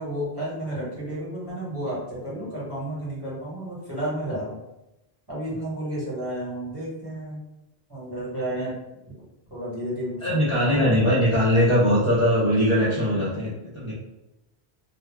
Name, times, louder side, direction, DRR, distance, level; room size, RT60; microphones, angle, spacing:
voice 1, 0.0-4.6 5.3-7.4 7.9-8.7 9.5-11.0, right 1 dB, 25° right, -8 dB, 0.9 m, -31 dB
voice 2, 10.2-13.9, equal, 35° left, -8 dB, 0.6 m, -21 dB
2.3 x 2.0 x 3.3 m, 0.93 s
omnidirectional pair, 1.0 m